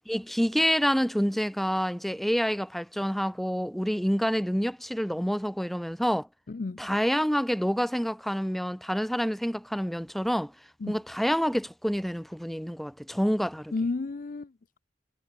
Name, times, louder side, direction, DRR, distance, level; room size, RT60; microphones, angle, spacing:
voice 1, 0.1-6.3 6.8-10.5 10.9-13.7, equal, ahead, 1.2 m, -27 dB
voice 2, 6.5-6.8 10.8-11.0 13.7-14.8, left 3 dB, 45° left, 0.5 m, -32 dB
head